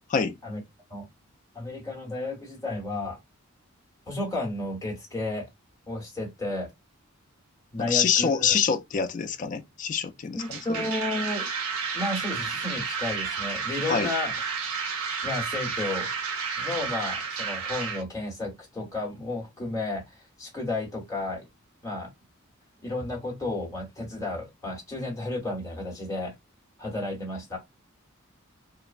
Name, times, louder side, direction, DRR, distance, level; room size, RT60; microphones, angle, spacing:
voice 1, 1.5-3.2 4.1-5.5 5.9-6.7 7.7-8.5 10.3-11.5 11.9-14.3 15.2-16.1 16.6-21.4 21.8-22.1 22.8-26.3 26.8-27.6, left 2 dB, 15° left, 1.0 m, -32 dB
voice 2, 7.8-10.8 13.9-14.1, left 7 dB, 35° left, 0.3 m, -26 dB
sound 1, 10.4-18.0, right 5 dB, 85° right, 0.6 m, -31 dB
3.1 x 2.0 x 2.4 m
head